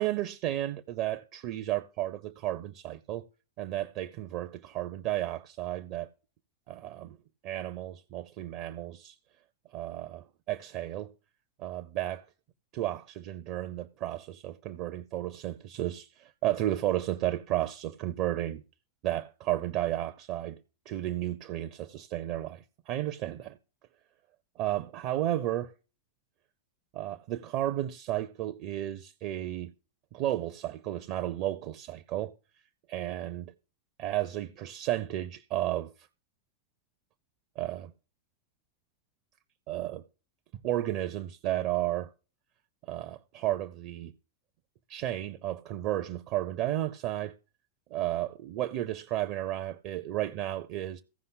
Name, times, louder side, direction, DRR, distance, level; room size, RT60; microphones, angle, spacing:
voice 1, 0.0-3.3 3.6-6.1 6.7-7.2 7.4-9.1 9.7-11.1 11.6-12.2 12.7-18.6 19.0-20.6 20.9-23.6 24.6-25.7 26.9-29.7 30.1-32.3 32.9-33.5 34.0-35.9 37.6-37.9 39.7-40.1 40.6-42.1 42.8-44.1 44.9-47.3 47.9-51.0, right 13 dB, 45° right, 0.6 m, -33 dB
15.5 x 5.5 x 3.9 m
figure-of-eight pair, 90°, 0 cm